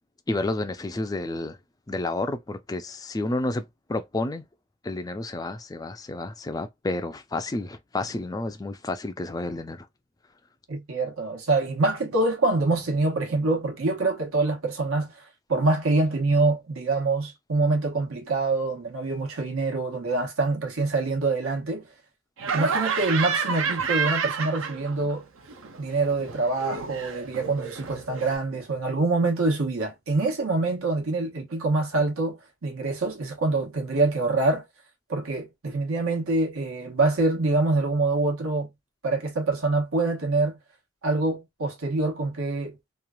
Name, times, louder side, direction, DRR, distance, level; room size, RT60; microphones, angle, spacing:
voice 1, 0.3-1.6 1.9-3.6 3.9-4.4 4.8-9.9, left 2 dB, 15° left, 0.3 m, -30 dB
voice 2, 10.7-15.1 15.5-21.9 22.5-25.2 25.8-34.6 35.1-38.7 39.0-40.6 41.0-42.8, right 3 dB, 85° right, 1.1 m, -25 dB
Laughter, 22.4-25.2 25.4-28.4, right 5 dB, 70° right, 0.5 m, -29 dB
3.0 x 2.4 x 2.2 m
head